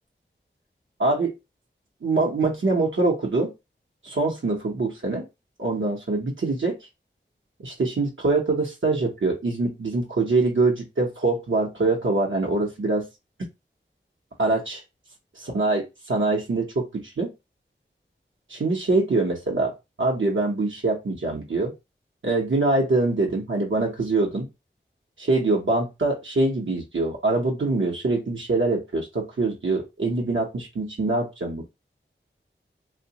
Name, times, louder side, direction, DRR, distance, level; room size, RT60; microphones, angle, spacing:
voice 1, 1.0-1.3 2.0-3.5 4.0-5.3 5.6-6.8 7.6-13.1 14.4-14.8 15.5-17.3 18.5-19.7 20.0-21.7 22.2-24.5 25.2-31.6, right 3 dB, 75° right, -1 dB, 0.7 m, -24 dB
2.8 x 2.1 x 2.7 m, 0.23 s
wide cardioid pair, 50°, 20 cm